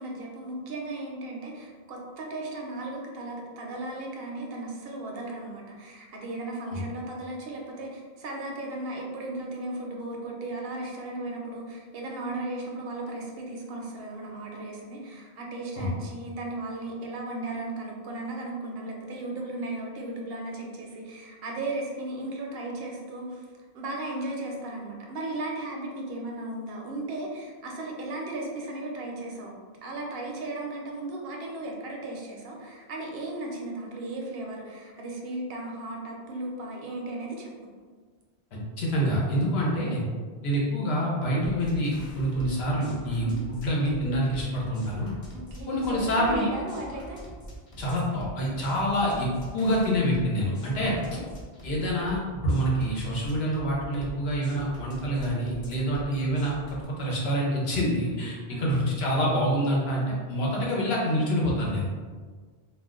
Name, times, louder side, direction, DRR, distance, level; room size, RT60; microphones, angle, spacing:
voice 1, 0.0-23.5 23.7-29.5 29.8-37.5 43.2-43.5 45.3-47.3 50.8-51.3 58.5-58.7, right 2 dB, 70° right, 0 dB, 0.8 m, -36 dB
voice 2, 38.5-40.0 40.4-45.1 45.7-46.5 47.8-50.9 51.6-61.9, equal, 80° left, -3 dB, 1.0 m, -26 dB
sound 1, 41.4-56.8, right 1 dB, 40° left, 0.7 m, -44 dB
2.4 x 2.1 x 3.6 m, 1.5 s
omnidirectional pair, 1.0 m